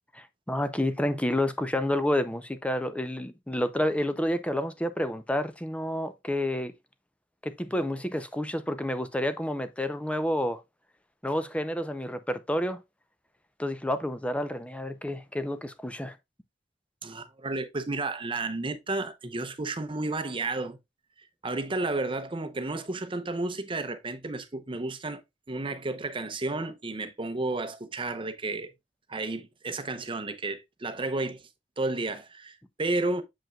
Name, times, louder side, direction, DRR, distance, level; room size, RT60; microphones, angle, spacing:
voice 1, 0.1-6.7 7.4-10.6 11.2-12.8 13.6-16.2, left 1 dB, 5° left, 0.6 m, -29 dB
voice 2, 17.0-20.8 21.4-25.2 25.5-28.7 29.1-31.4 31.8-33.2, right 2 dB, 30° right, 0.7 m, -32 dB
7.5 x 5.4 x 2.3 m
head